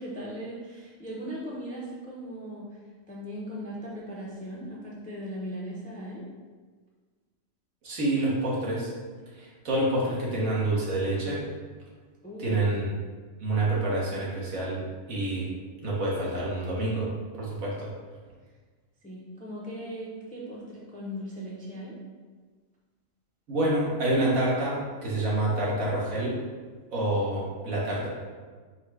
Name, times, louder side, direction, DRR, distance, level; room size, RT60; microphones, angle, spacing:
voice 1, 0.0-2.8 3.1-6.2 12.2-12.6 19.0-22.0, equal, 10° left, -4 dB, 0.3 m, -38 dB
voice 2, 7.8-8.9 9.3-11.4 12.4-12.9 13.4-15.5 15.8-17.9 23.5-26.3 26.9-28.1, right 1 dB, 90° right, -5 dB, 1.5 m, -27 dB
4.4 x 2.1 x 4.6 m, 1.4 s
omnidirectional pair, 1.4 m